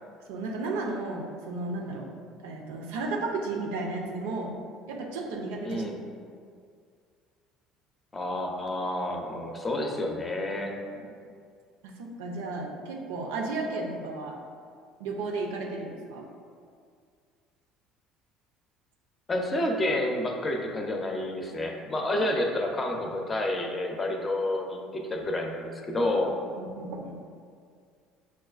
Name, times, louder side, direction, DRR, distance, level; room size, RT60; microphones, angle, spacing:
voice 1, 0.3-2.1 2.4-4.6 4.9-5.8 10.9-11.0 11.8-14.4 15.0-16.3 22.1-22.2 26.5-27.1, right 3 dB, 80° right, 1 dB, 0.5 m, -33 dB
voice 2, 5.6-6.0 8.1-10.7 19.3-26.3, left 1 dB, 25° left, 2 dB, 0.6 m, -29 dB
6.0 x 2.3 x 2.4 m, 2.2 s
hypercardioid pair, 75°, 0 cm